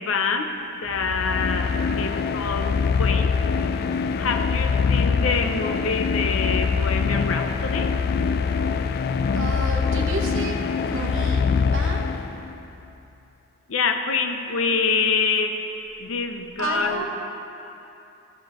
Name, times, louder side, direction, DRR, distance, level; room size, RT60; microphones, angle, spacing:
voice 1, 0.0-2.7 3.0-3.4 4.2-7.9 13.7-15.7 16.0-17.1, left 4 dB, 85° left, 6 dB, 0.6 m, -26 dB
sound 1, 0.9-12.6, left 5 dB, 50° left, 0.3 m, -24 dB
voice 2, 9.3-10.5 10.8-12.1 16.6-17.1, right 2 dB, 80° right, 1 dB, 1.0 m, -31 dB
13.0 x 6.7 x 3.0 m, 2.8 s
head